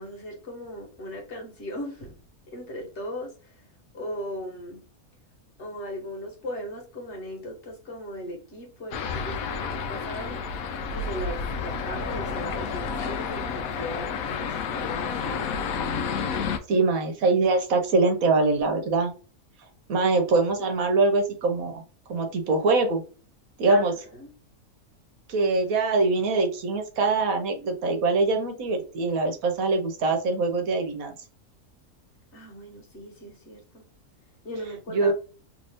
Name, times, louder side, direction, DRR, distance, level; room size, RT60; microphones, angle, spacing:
voice 1, 0.0-2.1 2.5-3.6 3.9-4.8 5.6-10.4 10.9-15.6 23.7-24.3 32.3-33.8 34.4-35.1, equal, 50° left, 1.4 m, -38 dB
sound 1, 8.9-16.6, left 5 dB, 75° left, 1.0 m, -30 dB
voice 2, 16.7-19.1 19.9-21.8 22.1-23.0 23.6-23.9 25.3-31.1 34.9-35.1, right 3 dB, 70° right, 1.3 m, -23 dB
3.2 x 2.6 x 3.4 m
omnidirectional pair, 1.5 m